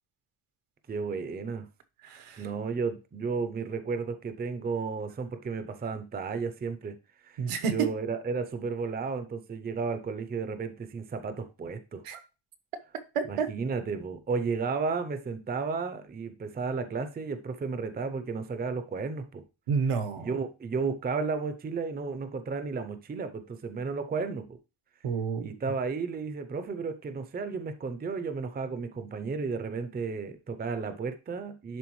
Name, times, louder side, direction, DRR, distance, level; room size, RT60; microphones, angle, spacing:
voice 1, 0.9-1.7 2.4-6.9 7.2-7.4 7.7-12.0 13.3-19.4 20.2-24.6 25.4-31.8, right 4 dB, 20° right, 0.5 m, -33 dB
voice 2, 2.0-2.4 7.4-7.9 12.0-12.2 13.1-13.5 19.7-20.3 25.0-25.5, right 5 dB, 90° right, 1.2 m, -29 dB
11.0 x 3.8 x 3.1 m
wide cardioid pair, 175°, 50 cm